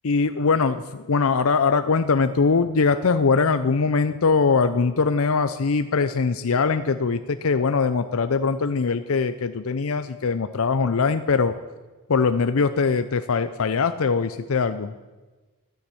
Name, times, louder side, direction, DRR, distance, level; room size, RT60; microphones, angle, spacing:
voice 1, 0.0-11.5 12.1-14.9, left 4 dB, 65° left, 10 dB, 0.6 m, -22 dB
13.0 x 10.5 x 9.8 m, 1.3 s
head